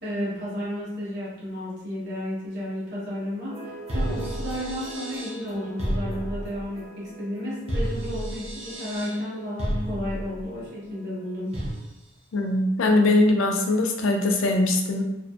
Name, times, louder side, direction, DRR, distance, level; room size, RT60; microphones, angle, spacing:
voice 1, 0.0-11.6, left 1 dB, 55° right, -7 dB, 1.0 m, -32 dB
sound 1, 3.5-11.9, right 1 dB, 30° right, 0.5 m, -32 dB
voice 2, 12.3-15.0, left 2 dB, 70° left, 3 dB, 0.4 m, -21 dB
2.6 x 2.4 x 2.3 m, 0.92 s
head